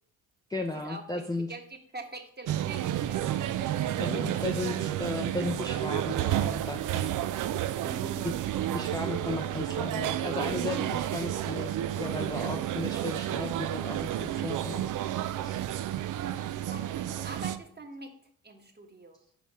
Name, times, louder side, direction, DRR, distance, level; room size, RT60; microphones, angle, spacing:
voice 1, 0.5-1.5 4.0-7.2 8.2-8.3 8.7-14.8 15.4-15.6, left 2 dB, 10° left, 2 dB, 0.6 m, -35 dB
voice 2, 1.9-3.8 4.1-4.4 7.8-8.2 16.4-18.1 18.4-19.2, right 2 dB, 25° right, 4 dB, 1.3 m, -44 dB
sound 1, 2.5-17.6, right 12 dB, 50° right, 0.5 m, -31 dB
5.5 x 5.3 x 4.3 m, 0.64 s
hypercardioid pair, 50°, 40 cm